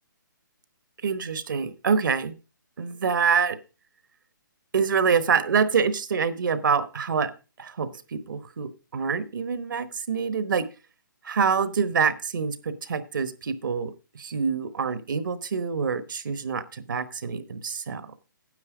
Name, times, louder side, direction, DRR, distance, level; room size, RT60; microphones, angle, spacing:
voice 1, 1.0-2.3 2.8-3.6 4.7-7.3 7.6-10.7 11.2-18.2, right 6 dB, 65° right, 13 dB, 1.1 m, -26 dB
9.7 x 7.7 x 4.9 m, 0.32 s
hypercardioid pair, 160°, 11 cm